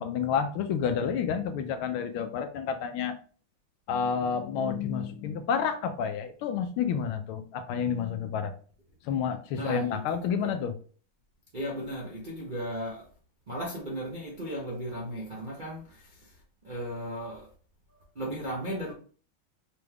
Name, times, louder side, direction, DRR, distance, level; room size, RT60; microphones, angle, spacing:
voice 1, 0.0-3.1 3.9-8.5 9.0-10.7, left 7 dB, 80° left, 1.4 m, -29 dB
voice 2, 9.5-10.6 11.5-13.1 13.5-16.4 16.6-17.5 17.9-18.9, equal, 45° right, 0.6 m, -36 dB
5.1 x 3.3 x 2.3 m
omnidirectional pair, 2.4 m